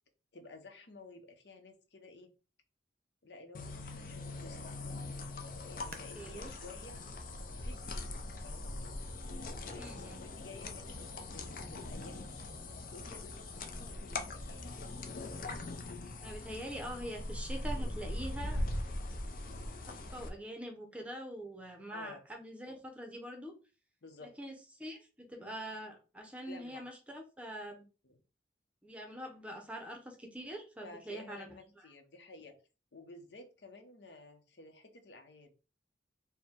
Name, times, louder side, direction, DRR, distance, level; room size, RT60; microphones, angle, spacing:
voice 1, 0.3-2.3 3.2-4.8 5.7-7.0 7.5-8.7 9.7-12.4 12.9-14.8 21.9-22.2 24.0-24.3 26.5-26.8 28.0-28.2 30.8-32.6 32.9-35.5, left 2 dB, 75° left, 6 dB, 0.8 m, -53 dB
sound 1, 3.5-20.3, left 2 dB, 50° left, 0.6 m, -41 dB
voice 2, 5.9-6.5 9.8-10.2 16.2-18.6 19.8-23.5 24.2-27.8 28.8-31.5, right 1 dB, 5° right, 3 dB, 0.7 m, -44 dB
sound 2, 5.9-9.3 9.9-10.0 10.6-11.0 11.4-11.5, right 5 dB, 50° right, 0.6 m, -59 dB
4.5 x 2.2 x 3.6 m, 0.33 s
head